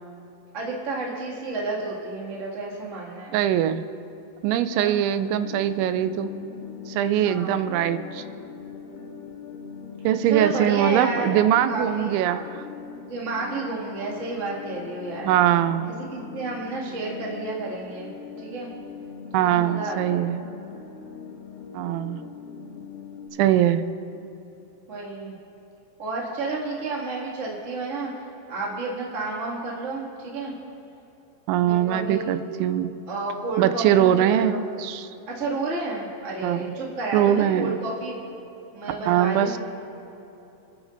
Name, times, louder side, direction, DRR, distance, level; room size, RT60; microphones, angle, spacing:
voice 1, 0.5-3.4 4.7-5.0 7.2-8.1 10.2-12.5 13.1-15.4 15.8-18.1 18.4-18.7 19.4-20.4 24.9-25.3 26.0-30.5 31.6-32.3 33.1-34.6 35.3-38.1 38.7-39.6, right 3 dB, 40° right, -5 dB, 1.1 m, -31 dB
voice 2, 3.3-3.9 4.4-6.3 6.9-8.2 10.0-12.6 15.2-15.9 19.3-20.4 21.7-22.2 23.4-23.8 31.5-32.9 33.6-35.1 36.4-36.7 37.1-37.8 39.1-39.6, right 11 dB, 90° right, 11 dB, 3.0 m, -22 dB
sound 1, 4.9-23.3, left 6 dB, 75° left, 3.1 m, -40 dB
28.5 x 10.5 x 2.6 m, 2.9 s
omnidirectional pair, 5.2 m